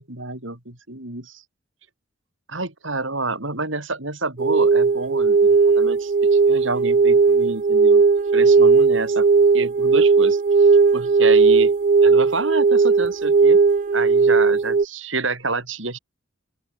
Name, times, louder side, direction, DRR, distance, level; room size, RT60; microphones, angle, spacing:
voice 1, 0.0-1.4 2.5-8.0 8.3-9.3 9.5-11.7 12.0-13.6 13.9-16.0, right 3 dB, 70° right, 5.7 m, -29 dB
sound 1, 4.4-14.9, right 4 dB, 40° right, 0.4 m, -16 dB
open air
head